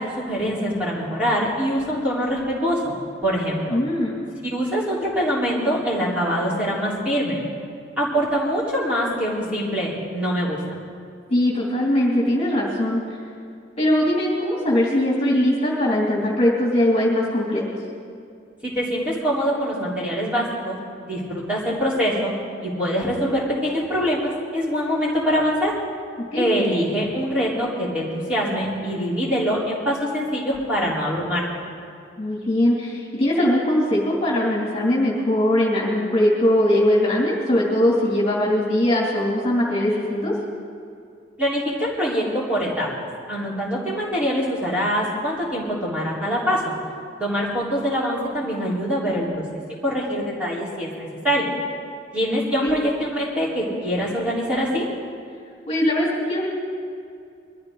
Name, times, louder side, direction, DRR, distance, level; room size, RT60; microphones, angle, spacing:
voice 1, 0.0-2.8 3.2-3.8 4.5-7.4 8.0-10.8 18.6-20.8 21.0-22.3 22.6-25.7 26.4-31.5 41.4-42.9 43.3-46.7 47.2-49.3 49.8-51.5 52.1-54.9, equal, 5° right, -8 dB, 3.8 m, -24 dB
voice 2, 3.7-4.1 11.3-13.0 13.8-17.6 26.3-26.5 32.2-40.3 52.6-52.8 55.7-56.5, left 1 dB, 30° left, -5 dB, 2.7 m, -20 dB
23.0 x 14.5 x 3.9 m, 2.4 s
head